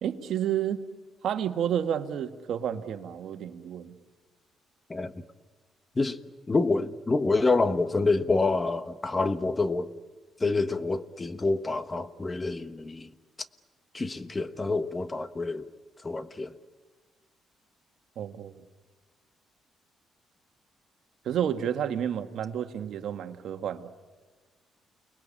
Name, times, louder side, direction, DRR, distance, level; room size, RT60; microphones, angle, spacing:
voice 1, 0.0-0.8 1.2-3.9 18.2-18.6 21.2-23.9, right 9 dB, 70° right, 1.6 m, -30 dB
voice 2, 6.5-9.9 10.4-13.1 13.9-15.7 16.0-16.5, left 3 dB, 25° left, 1.3 m, -27 dB
30.0 x 20.5 x 8.6 m
cardioid pair, 90°, 0 cm